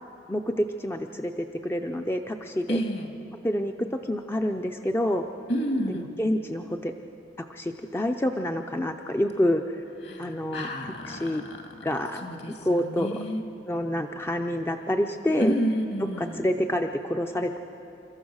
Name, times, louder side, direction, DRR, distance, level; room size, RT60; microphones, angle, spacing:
voice 1, 0.3-2.8 3.4-5.3 5.9-6.9 7.5-9.8 10.2-11.4 11.8-12.3 12.6-13.2 13.7-15.6 16.2-17.6, left 1 dB, 10° left, 5 dB, 0.5 m, -28 dB
voice 2, 2.7-3.1 5.5-6.1 10.0-11.8 12.2-13.4 15.4-16.5, equal, 60° left, 3 dB, 2.5 m, -30 dB
29.5 x 14.0 x 6.4 m, 3.0 s
head